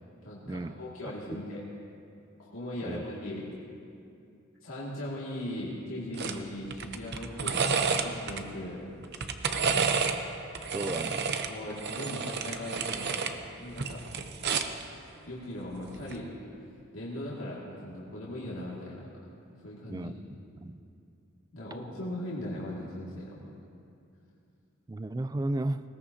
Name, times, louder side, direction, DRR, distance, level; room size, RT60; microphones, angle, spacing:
voice 1, 0.2-1.6 2.4-3.5 4.6-8.8 10.7-10.9 11.5-13.2 13.6-14.0 15.2-16.3 16.9-19.3 19.6-20.1 21.5-23.4, left 1 dB, 85° left, -6 dB, 2.2 m, -39 dB
sound 1, 6.2-6.4 6.7-8.4 9.0-10.2 10.5-13.3 13.7-14.8 16.0-16.2, right 5 dB, 55° right, 0.8 m, -30 dB
voice 2, 10.7-11.2 19.9-20.1 20.6-20.8 24.9-25.8, right 2 dB, 20° right, 12 dB, 0.3 m, -33 dB
19.5 x 17.5 x 2.8 m, 2.5 s
head